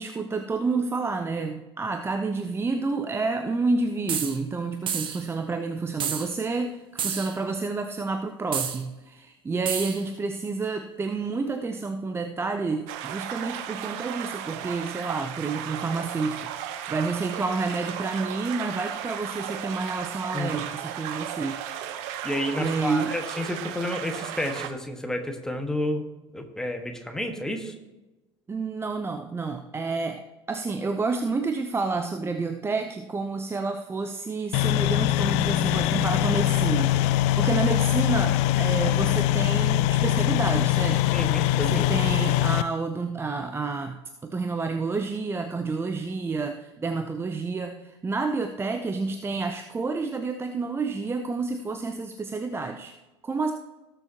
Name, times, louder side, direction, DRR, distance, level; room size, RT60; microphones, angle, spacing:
voice 1, 0.0-21.6 22.6-23.1 28.5-41.2 41.6-43.9 44.2-53.0 53.2-53.5, right 4 dB, 15° right, 7 dB, 0.7 m, -29 dB
sound 1, 4.1-4.4 4.9-5.2 6.0-6.3 7.0-7.4 8.5-8.8 9.7-10.0, right 8 dB, 35° right, 1.2 m, -29 dB
sound 2, 12.9-24.7, right 10 dB, 55° right, 0.9 m, -35 dB
voice 2, 22.2-26.0 26.3-27.7 41.1-41.8, left 1 dB, 5° left, 4 dB, 1.6 m, -30 dB
sound 3, 34.5-42.6, left 14 dB, 50° left, 0.4 m, -23 dB
18.5 x 7.0 x 2.9 m, 1.1 s
figure-of-eight pair, 70°, 14 cm